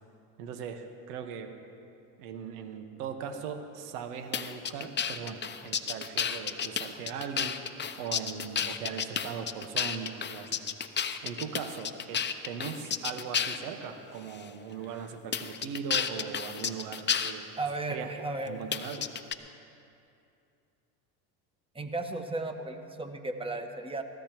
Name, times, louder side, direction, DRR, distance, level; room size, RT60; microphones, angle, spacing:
voice 1, 0.4-1.5 2.2-7.6 8.0-10.6 11.2-17.5 17.9-18.1 18.5-19.1, right 7 dB, 75° right, 6 dB, 1.5 m, -39 dB
sound 1, 4.3-13.7 14.3-14.5 15.3-17.3 18.7-19.3, left 7 dB, 20° left, 0.8 m, -31 dB
voice 2, 17.6-18.6 21.7-24.0, right 2 dB, 10° right, 6 dB, 1.4 m, -35 dB
23.0 x 16.0 x 3.1 m, 2.6 s
hypercardioid pair, 90°, 48 cm